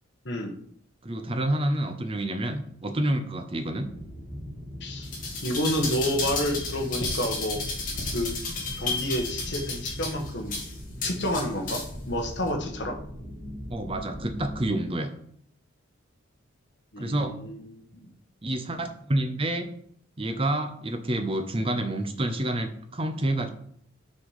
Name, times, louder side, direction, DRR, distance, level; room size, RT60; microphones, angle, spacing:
voice 1, 0.2-0.6 4.8-5.1 5.4-7.6 8.1-8.4 8.7-10.6 11.0-13.0 16.9-18.1, equal, 55° left, 3 dB, 1.3 m, -29 dB
voice 2, 1.0-3.9 13.7-15.1 17.0-17.4 18.4-19.7 20.2-23.5, right 1 dB, 25° right, 7 dB, 0.7 m, -28 dB
sound 1, 3.8-14.6, equal, 5° left, 2.2 m, -40 dB
sound 2, 5.0-12.0 12.5-12.6, left 3 dB, 40° left, 2.3 m, -32 dB
6.2 x 5.5 x 4.9 m, 0.63 s
head